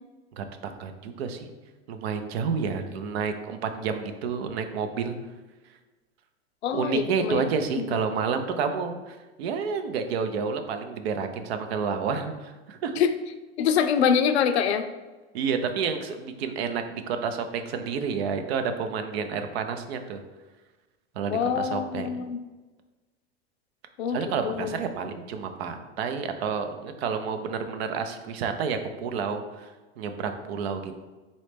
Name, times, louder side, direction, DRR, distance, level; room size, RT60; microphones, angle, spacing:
voice 1, 0.3-1.5 1.9-5.2 6.7-13.0 15.3-20.2 21.1-22.2 24.1-29.7 30.0-31.0, right 6 dB, 75° right, 7 dB, 0.6 m, -30 dB
voice 2, 6.6-7.4 7.7-7.9 13.0-13.1 13.6-14.9 21.3-22.4 24.0-24.2 24.4-24.8, left 7 dB, 90° left, 10 dB, 0.5 m, -24 dB
4.1 x 3.1 x 3.3 m, 1.2 s
hypercardioid pair, 110°, 31 cm